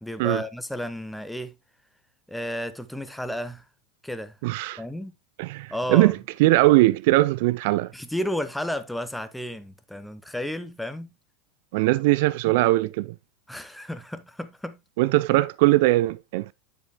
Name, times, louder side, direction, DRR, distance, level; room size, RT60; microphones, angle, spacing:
voice 1, 0.0-1.5 2.3-3.6 4.0-4.4 4.8-5.1 5.7-6.1 7.9-11.1 13.5-14.8, left 1 dB, 5° left, 1.0 m, -32 dB
voice 2, 4.4-4.8 5.4-7.9 11.7-13.1 15.0-16.5, right 19 dB, 60° right, 0.4 m, -20 dB
9.7 x 7.5 x 2.2 m
hypercardioid pair, 85°, 0 cm